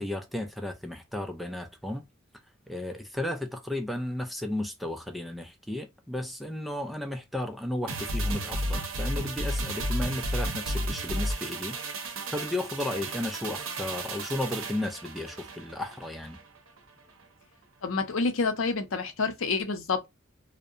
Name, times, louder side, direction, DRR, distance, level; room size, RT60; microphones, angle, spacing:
voice 1, 0.0-2.0 2.7-11.8 12.3-16.4, left 1 dB, ahead, 0.3 m, -34 dB
sound 1, 7.9-16.5 16.8-16.9, right 1 dB, 90° right, 0.6 m, -33 dB
voice 2, 17.8-20.1, left 4 dB, 80° left, 0.6 m, -28 dB
2.7 x 2.1 x 2.4 m
head